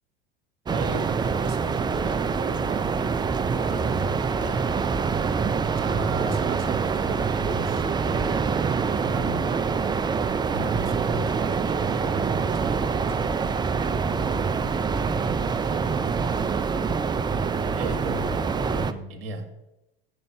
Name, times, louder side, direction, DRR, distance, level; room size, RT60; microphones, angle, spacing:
sound 1, 0.7-18.9, right 5 dB, 15° right, 0.4 m, -25 dB
voice 1, 0.7-3.0 3.5-4.8 5.8-8.6 9.0-9.5 10.5-13.7 17.6-19.5, right 3 dB, 70° right, 6 dB, 1.3 m, -36 dB
7.8 x 5.2 x 5.6 m, 0.96 s
hypercardioid pair, 80°, 30 cm